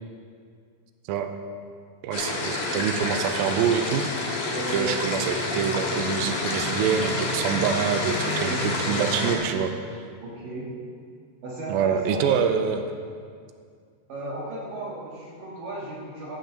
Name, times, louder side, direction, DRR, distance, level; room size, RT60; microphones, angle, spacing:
voice 1, 2.0-4.4 4.7-9.7 11.7-12.8, right 7 dB, 85° right, 7 dB, 2.5 m, -26 dB
sound 1, 2.1-9.4, left 2 dB, 60° left, 3.1 m, -28 dB
voice 2, 4.4-5.5 8.3-8.8 10.2-10.8 11.4-12.3 14.1-16.4, right 2 dB, 65° right, -6 dB, 3.1 m, -35 dB
14.0 x 5.9 x 7.4 m, 2.1 s
omnidirectional pair, 4.3 m